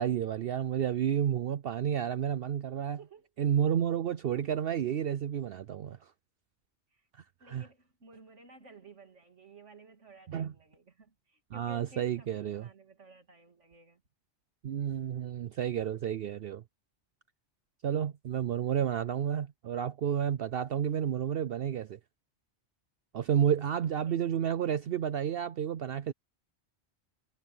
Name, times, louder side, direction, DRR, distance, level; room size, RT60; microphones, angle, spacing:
voice 1, 0.0-3.0 3.4-6.0 7.5-7.7 10.3-10.5 11.5-12.7 14.6-16.6 17.8-22.0 23.1-26.1, right 9 dB, 60° right, 0.7 m, -31 dB
voice 2, 3.0-3.3 6.9-7.1 7.4-14.0 23.8-24.2, right 3 dB, 90° right, 3.0 m, -55 dB
omnidirectional pair, 1.2 m